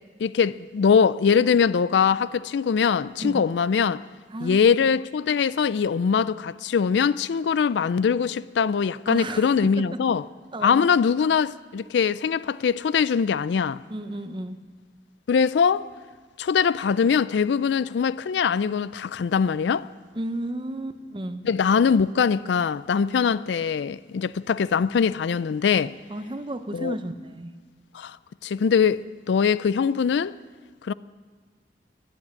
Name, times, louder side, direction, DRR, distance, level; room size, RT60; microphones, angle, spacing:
voice 1, 0.2-4.0 4.4-10.2 10.6-13.8 15.3-15.9 16.4-19.9 21.4-25.9 26.7-27.0 27.9-28.2 28.4-29.0 29.3-30.3 30.9-31.0, left 6 dB, 70° left, 0.4 m, -22 dB
voice 2, 4.3-4.7 9.1-10.0 10.5-10.8 13.9-14.6 20.1-21.4 26.1-27.6, right 1 dB, 25° right, 0.7 m, -33 dB
14.5 x 11.0 x 8.8 m
head